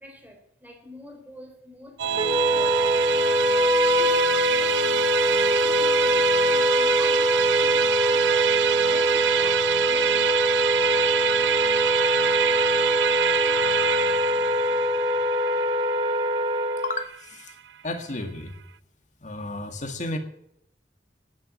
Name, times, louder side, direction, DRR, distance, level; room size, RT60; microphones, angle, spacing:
voice 1, 0.0-3.5 4.0-8.5 8.8-10.6, left 1 dB, 10° right, 3.6 m, -45 dB
Musical instrument, 2.0-17.5, right 9 dB, 90° right, 0.6 m, -26 dB
Wind instrument woodwind instrument, 2.2-17.0, equal, 30° right, 0.9 m, -23 dB
voice 2, 16.8-17.5 17.8-18.6 19.2-20.2, left 2 dB, 45° left, 1.9 m, -32 dB
13.0 x 9.5 x 7.4 m
head